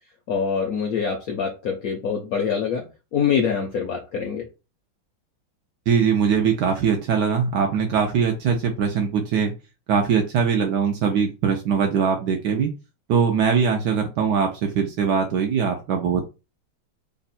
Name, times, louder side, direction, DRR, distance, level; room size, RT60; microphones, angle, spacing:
voice 1, 0.3-2.8 3.1-4.4, left 6 dB, 70° left, 2 dB, 0.8 m, -24 dB
voice 2, 5.9-9.5 9.9-12.7 13.1-16.2, right 6 dB, 75° right, 3 dB, 1.0 m, -21 dB
3.5 x 2.2 x 4.1 m, 0.29 s
omnidirectional pair, 2.3 m